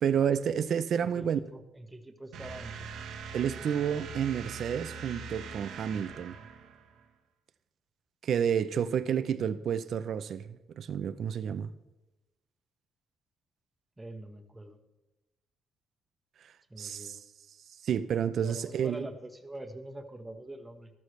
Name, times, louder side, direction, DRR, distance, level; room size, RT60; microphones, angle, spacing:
voice 1, 0.0-1.4 3.3-6.4 8.2-11.7 16.8-17.2 17.8-19.1, right 8 dB, 65° right, 0.6 m, -30 dB
voice 2, 0.9-2.9 14.0-14.8 16.7-17.2 18.4-20.9, right 1 dB, 15° right, 1.2 m, -44 dB
sound 1, 2.3-7.0, right 5 dB, 85° right, 1.2 m, -42 dB
13.5 x 13.0 x 3.3 m
cardioid pair, 90°, 0 cm